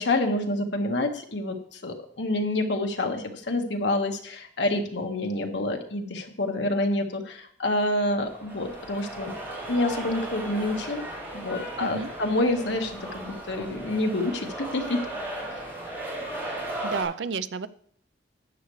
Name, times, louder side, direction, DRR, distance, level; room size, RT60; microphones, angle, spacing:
voice 1, 0.0-9.3 9.7-11.0 11.3-15.0, left 2 dB, 80° left, 3 dB, 1.6 m, -27 dB
sound 1, 8.0-17.0, right 1 dB, 15° right, 4.2 m, -36 dB
voice 2, 16.8-17.7, right 5 dB, 85° right, 14 dB, 0.6 m, -31 dB
12.5 x 9.4 x 3.2 m, 0.63 s
head